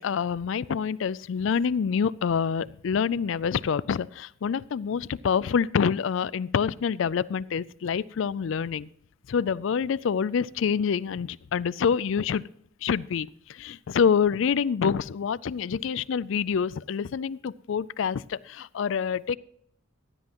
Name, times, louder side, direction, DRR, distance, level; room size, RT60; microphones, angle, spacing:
voice 1, 0.0-8.9 9.3-12.4 12.8-19.4, left 6 dB, 65° left, 19 dB, 0.4 m, -26 dB
15.5 x 9.7 x 3.0 m, 0.66 s
head